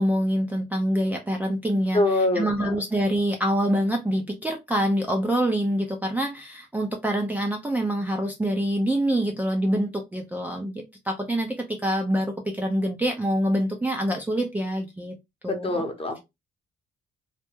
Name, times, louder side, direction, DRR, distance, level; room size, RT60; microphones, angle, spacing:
voice 1, 0.0-15.1 15.4-15.8, equal, 10° right, 0.4 m, -26 dB
voice 2, 1.9-2.7 15.5-16.2, left 2 dB, 30° left, 0.8 m, -24 dB
2.2 x 2.0 x 2.9 m
cardioid pair, 90°, 20 cm